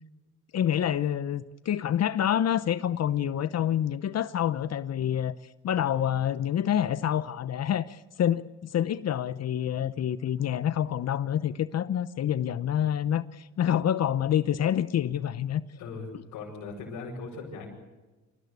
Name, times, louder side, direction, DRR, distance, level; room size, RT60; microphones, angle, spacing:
voice 1, 0.5-15.6, left 10 dB, 55° left, 15 dB, 0.8 m, -27 dB
voice 2, 15.8-17.7, left 4 dB, 90° left, -5 dB, 6.3 m, -39 dB
26.5 x 16.5 x 8.2 m, 1.2 s
cardioid pair, 90°, 30 cm